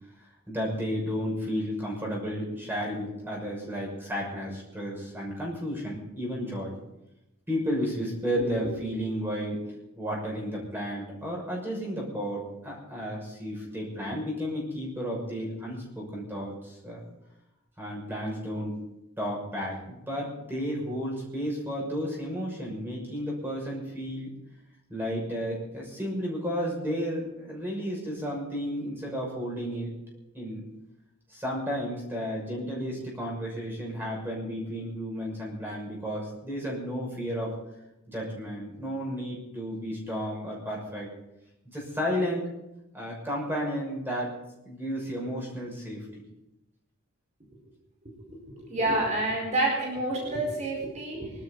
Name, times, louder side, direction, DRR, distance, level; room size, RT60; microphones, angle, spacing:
voice 1, 0.5-6.8 7.5-9.6 10.0-17.1 17.8-18.8 19.2-24.3 24.9-29.9 30.3-30.6 31.3-37.5 38.1-41.1 41.7-42.5 42.9-44.4 44.6-46.2, equal, 10° right, -2 dB, 6.4 m, -32 dB
voice 2, 48.7-51.3, right 2 dB, 35° right, -2 dB, 4.7 m, -28 dB
24.0 x 13.0 x 4.1 m, 0.90 s
head